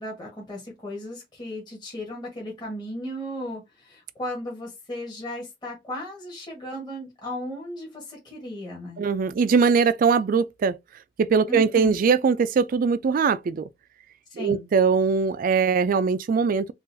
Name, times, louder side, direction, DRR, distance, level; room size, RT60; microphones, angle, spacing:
voice 1, 0.0-9.0 11.5-11.9 14.3-14.7, equal, 25° left, 1.3 m, -35 dB
voice 2, 9.0-10.8 11.2-13.7 14.4-16.7, right 5 dB, 50° right, 0.3 m, -21 dB
3.8 x 2.4 x 2.6 m
head